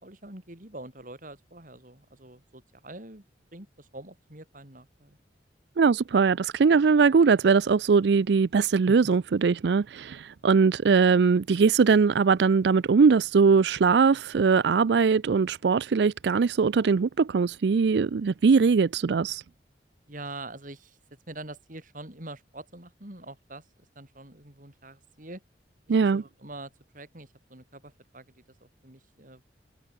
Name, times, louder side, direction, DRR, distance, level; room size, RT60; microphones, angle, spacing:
voice 1, 0.0-3.2 3.5-5.2 8.9-9.0 20.1-21.0 21.3-23.7 24.0-25.4 25.9-29.4, right 2 dB, 45° right, 3.9 m, -44 dB
voice 2, 5.8-19.4 25.9-26.2, right 5 dB, 65° right, 0.4 m, -21 dB
head